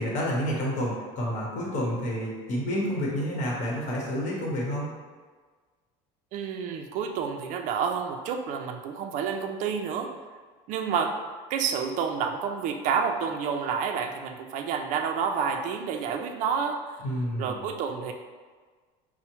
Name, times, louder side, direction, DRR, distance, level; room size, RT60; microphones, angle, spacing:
voice 1, 0.0-4.9 17.0-17.7, equal, 50° left, -3 dB, 1.0 m, -29 dB
voice 2, 6.3-10.1 10.7-11.2 11.5-17.0 17.4-18.1, right 6 dB, 55° right, 4 dB, 0.4 m, -29 dB
5.6 x 2.1 x 2.9 m, 1.5 s
cardioid pair, 150°, 16 cm